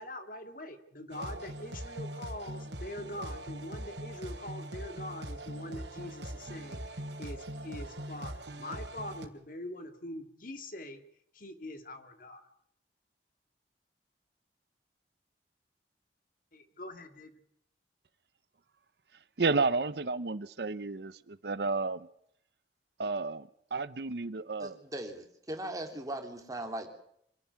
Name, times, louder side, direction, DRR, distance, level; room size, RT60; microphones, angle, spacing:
voice 1, 0.0-11.0 11.3-12.5 16.5-17.4, left 1 dB, 50° left, 8 dB, 2.1 m, -43 dB
sound 1, 1.1-9.3, right 1 dB, 85° right, 3.0 m, -41 dB
voice 2, 19.4-22.1 23.0-24.8, right 3 dB, 65° right, 15 dB, 0.8 m, -32 dB
voice 3, 24.6-26.9, right 1 dB, 20° right, 4 dB, 3.0 m, -39 dB
26.0 x 12.0 x 9.6 m, 0.71 s
head